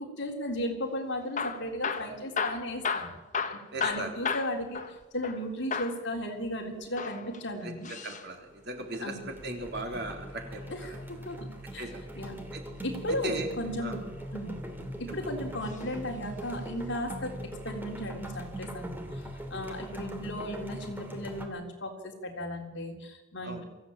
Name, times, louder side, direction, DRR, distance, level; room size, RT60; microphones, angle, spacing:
voice 1, 0.0-3.2 3.4-4.8 5.1-7.9 9.0-9.3 10.7-12.4 12.8-14.6 15.0-17.3 17.6-23.6, left 1 dB, 55° left, 3 dB, 3.8 m, -36 dB
Hammer / Drill, 1.2-5.4 5.7-6.0 6.8-8.3 10.0-11.3 13.0-13.4 14.1-15.0 15.6-15.9 16.2-16.3 16.9-17.0, left 5 dB, 35° left, 1.4 m, -35 dB
voice 2, 3.7-4.1 8.0-9.1 9.4-10.6 10.9-11.0 11.8-12.0 12.5-12.6 13.2-13.5 13.8-13.9 23.4-23.6, right 2 dB, 50° right, 3 dB, 3.8 m, -37 dB
sound 1, 8.2-8.5 8.8-21.5, equal, 10° right, 2.5 m, -41 dB
23.5 x 15.5 x 8.8 m, 1.1 s
head